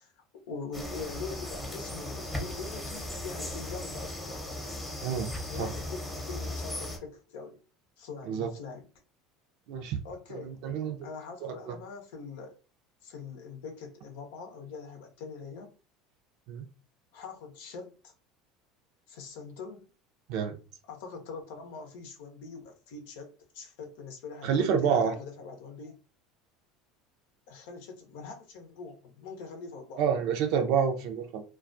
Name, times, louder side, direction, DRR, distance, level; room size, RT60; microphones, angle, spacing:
voice 1, 0.0-4.6 5.5-7.6 8.0-8.9 10.0-10.6 11.0-12.6 13.0-15.8 17.1-18.1 19.1-19.9 20.9-26.0 27.5-30.0, left 4 dB, 75° left, 0.6 m, -43 dB
sound 1, 0.7-7.0, left 1 dB, 10° left, 0.8 m, -37 dB
voice 2, 10.3-11.0 11.4-11.7 16.5-16.6 20.3-20.6 24.4-25.1 30.0-31.4, right 7 dB, 65° right, 0.5 m, -28 dB
2.3 x 2.3 x 2.5 m
hypercardioid pair, 85°, 0 cm